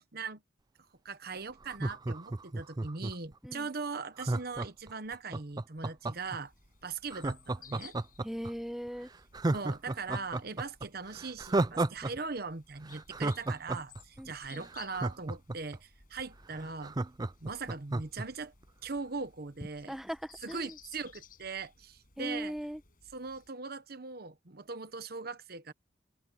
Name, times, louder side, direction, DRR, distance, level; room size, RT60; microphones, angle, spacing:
voice 1, 1.0-6.5 6.8-8.0 9.5-16.9 17.4-18.5 18.8-19.9 20.4-22.5 23.1-25.7, right 4 dB, 55° right, 1.1 m, -40 dB
Laughter, 1.6-3.3 4.2-6.4 7.1-8.5 8.9-9.0 9.3-12.1 12.4-12.5 12.9-15.8 16.2-16.3 16.5-18.2 18.6-18.7, right 2 dB, 20° right, 0.5 m, -33 dB
sound 1, 6.1-23.5, left 6 dB, 50° left, 5.8 m, -59 dB
voice 2, 8.2-9.1 14.2-14.7 19.9-20.8 22.2-22.8, equal, ahead, 1.1 m, -39 dB
open air
head